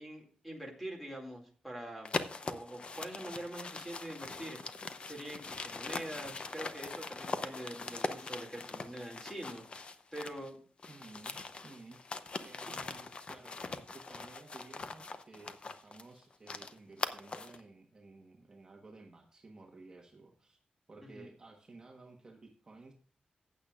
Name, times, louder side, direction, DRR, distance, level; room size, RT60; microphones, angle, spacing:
voice 1, 0.0-2.1 2.4-4.6 5.0-10.6 21.1-21.3, right 1 dB, 5° left, 1 dB, 2.4 m, -44 dB
sound 1, 2.0-10.5 10.8-17.6, left 4 dB, 40° left, 0.7 m, -41 dB
voice 2, 10.9-12.0 12.4-20.6 20.9-22.9, right 3 dB, 30° right, 1 dB, 1.3 m, -55 dB
15.0 x 8.5 x 2.5 m, 0.42 s
wide cardioid pair, 160°, 3 cm